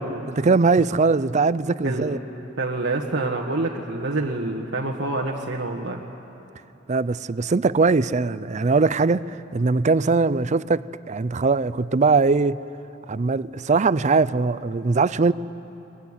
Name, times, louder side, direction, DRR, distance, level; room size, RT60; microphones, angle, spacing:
voice 1, 0.4-2.2 6.9-9.2 9.5-12.6 13.1-15.3, right 4 dB, 40° right, 17 dB, 0.5 m, -21 dB
voice 2, 1.8-2.2 2.6-6.0, right 2 dB, 70° right, -2 dB, 1.6 m, -27 dB
23.0 x 21.0 x 9.8 m, 2.9 s
head